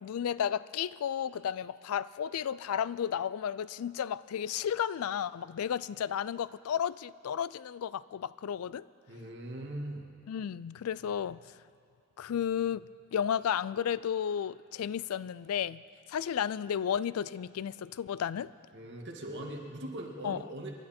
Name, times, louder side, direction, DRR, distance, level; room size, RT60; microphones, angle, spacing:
voice 1, 0.0-8.8 10.3-11.4 12.2-12.9 13.1-15.8 16.1-18.5 20.2-20.4, left 8 dB, 85° left, 19 dB, 0.4 m, -33 dB
voice 2, 9.1-10.1 18.7-20.7, right 1 dB, 55° right, 0 dB, 2.0 m, -40 dB
27.0 x 11.5 x 4.4 m, 2.3 s
head